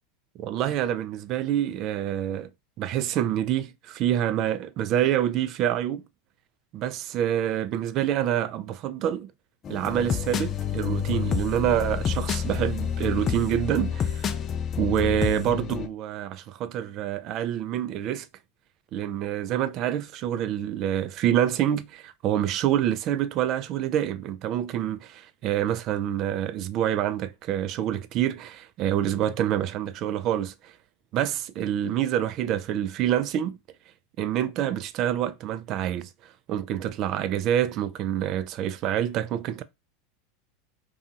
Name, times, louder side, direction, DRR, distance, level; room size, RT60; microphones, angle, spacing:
voice 1, 0.4-2.5 2.8-6.0 6.7-9.3 9.7-14.3 14.8-18.3 18.9-30.7 31.1-33.6 34.2-36.1 36.5-39.6, right 11 dB, 50° right, 0.3 m, -27 dB
sound 1, 9.6-15.9, left 8 dB, 35° left, 0.4 m, -29 dB
2.8 x 2.3 x 2.7 m
hypercardioid pair, 90°, 0 cm